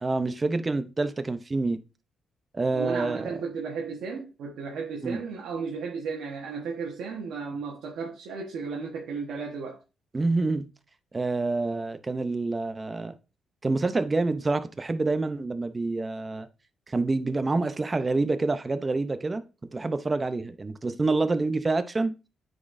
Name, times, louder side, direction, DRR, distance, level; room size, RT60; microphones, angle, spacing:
voice 1, 0.0-1.8 2.5-3.3 5.0-5.2 10.1-10.7 11.1-13.2 13.6-16.5 16.9-19.4 19.7-22.1, right 3 dB, 25° right, 0.6 m, -27 dB
voice 2, 2.7-9.8, right 5 dB, 80° right, 1.1 m, -34 dB
9.2 x 4.1 x 2.6 m
cardioid pair, 110°, 0 cm